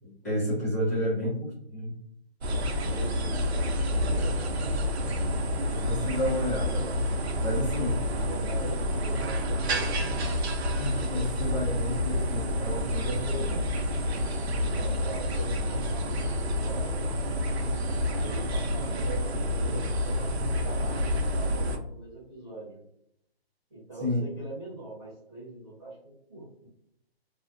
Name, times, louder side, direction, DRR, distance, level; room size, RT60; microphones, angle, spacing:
voice 1, 0.0-2.0 5.7-7.0 7.4-8.0 10.8-13.5 24.0-24.2, equal, 15° left, -12 dB, 0.9 m, -31 dB
voice 2, 0.9-1.3 2.8-4.8 7.8-10.3 12.9-13.7 14.7-17.4 18.1-22.8 23.7-26.5, right 2 dB, 25° right, -9 dB, 0.6 m, -42 dB
sound 1, 2.4-21.8, left 1 dB, 90° right, 0.5 m, -28 dB
2.4 x 2.0 x 2.5 m, 0.76 s
hypercardioid pair, 175°, 31 cm